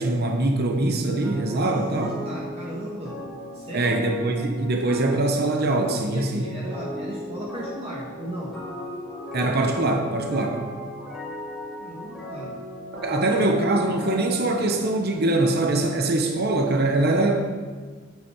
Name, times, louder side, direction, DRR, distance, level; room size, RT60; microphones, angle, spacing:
voice 1, 0.0-2.1 3.7-6.5 9.3-10.6 12.9-17.5, right 2 dB, 45° right, 3 dB, 1.0 m, -23 dB
sound 1, 1.2-15.8, equal, ahead, 3.5 m, -37 dB
voice 2, 1.6-3.1 3.5-4.0 6.1-8.5 11.8-12.5 13.1-13.5, right 1 dB, 30° right, -5 dB, 1.5 m, -36 dB
9.5 x 9.1 x 4.7 m, 1.5 s
head